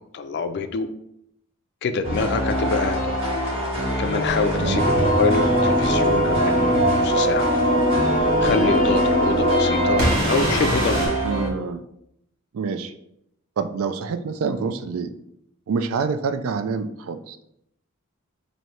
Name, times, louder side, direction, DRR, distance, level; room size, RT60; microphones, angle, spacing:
voice 1, 0.1-0.9 1.8-3.2 4.0-7.5 8.4-11.1, left 4 dB, 55° left, 9 dB, 0.4 m, -26 dB
sound 1, 2.0-11.5, equal, 25° right, 1.3 m, -26 dB
voice 2, 4.5-4.8 11.2-11.8 12.5-12.9 13.6-15.1 15.7-17.5, right 5 dB, 80° right, 11 dB, 0.4 m, -27 dB
sound 2, 4.6-10.2 10.6-10.7, equal, 10° right, 0.7 m, -33 dB
sound 3, 4.7-11.1, equal, 50° right, 1.3 m, -21 dB
3.1 x 2.7 x 4.3 m, 0.76 s
head